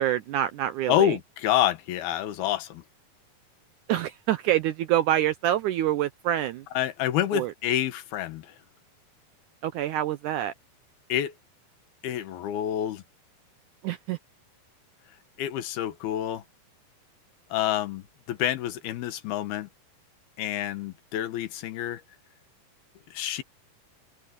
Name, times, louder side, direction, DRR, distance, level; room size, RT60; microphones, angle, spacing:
voice 1, 0.0-1.2 3.9-6.6 7.3-7.5 9.6-10.5 13.8-14.2, right 12 dB, 80° right, 1.8 m, -26 dB
voice 2, 0.9-2.8 6.7-8.5 11.1-11.3 12.0-13.0 15.4-16.4 17.5-19.7 20.4-22.0 23.1-23.4, left 11 dB, 90° left, 3.2 m, -28 dB
omnidirectional pair, 4.3 m